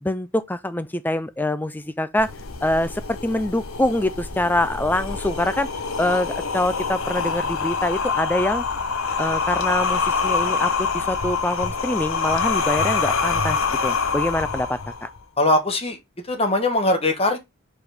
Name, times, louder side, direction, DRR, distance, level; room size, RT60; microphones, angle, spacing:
voice 1, 0.0-2.3 2.6-5.7 6.0-8.6 9.2-15.1, left 1 dB, 10° left, 0.4 m, -24 dB
sound 1, 2.2-15.2, left 5 dB, 65° left, 0.8 m, -25 dB
voice 2, 15.4-16.0 16.3-17.4, left 2 dB, 25° left, 1.2 m, -20 dB
4.8 x 4.3 x 4.9 m
head